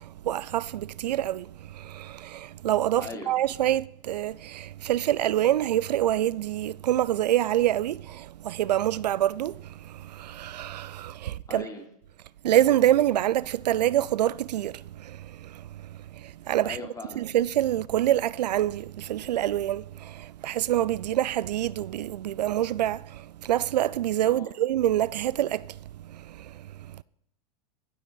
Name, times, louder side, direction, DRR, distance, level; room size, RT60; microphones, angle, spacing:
voice 1, 0.0-11.7 12.4-16.8 17.2-27.0, right 12 dB, 85° right, 0.5 m, -26 dB
voice 2, 3.0-3.3 11.5-11.8 16.6-17.2 24.3-24.5, left 3 dB, 15° left, 3.4 m, -39 dB
16.0 x 7.7 x 7.0 m
hypercardioid pair, 110°, 21 cm